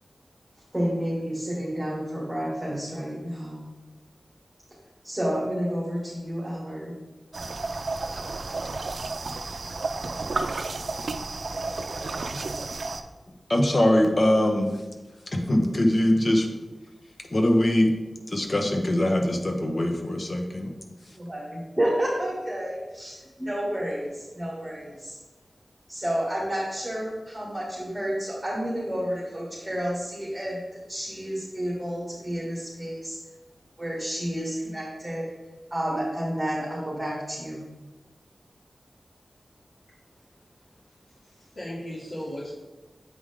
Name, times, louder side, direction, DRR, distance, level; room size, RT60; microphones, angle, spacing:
voice 1, 0.7-3.7 5.0-6.9 21.1-25.2 25.9-30.6 30.9-33.2 33.8-35.2 35.7-37.6, equal, 15° right, -7 dB, 2.4 m, -30 dB
sound 1, 7.3-13.0, right 3 dB, 80° right, 0.4 m, -32 dB
voice 2, 13.5-14.7 15.3-16.5 17.3-17.9 18.3-20.7, left 1 dB, 50° left, 3 dB, 1.0 m, -22 dB
voice 3, 41.2-42.6, equal, 75° left, -9 dB, 1.9 m, -36 dB
8.1 x 4.8 x 3.7 m, 1.2 s
wide cardioid pair, 75°, 0 cm